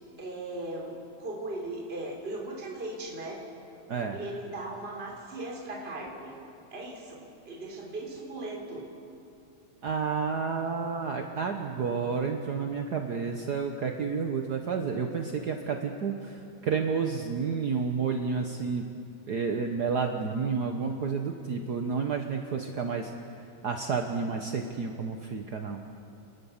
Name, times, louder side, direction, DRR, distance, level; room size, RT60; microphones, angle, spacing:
voice 1, 0.2-3.4 4.1-6.3 6.7-8.9, right 2 dB, 20° right, -2 dB, 3.7 m, -38 dB
voice 2, 3.9-4.2 9.8-18.8 19.3-23.1 23.6-25.8, right 5 dB, 60° right, 4 dB, 1.0 m, -30 dB
29.5 x 21.0 x 7.3 m, 2.7 s
omnidirectional pair, 3.4 m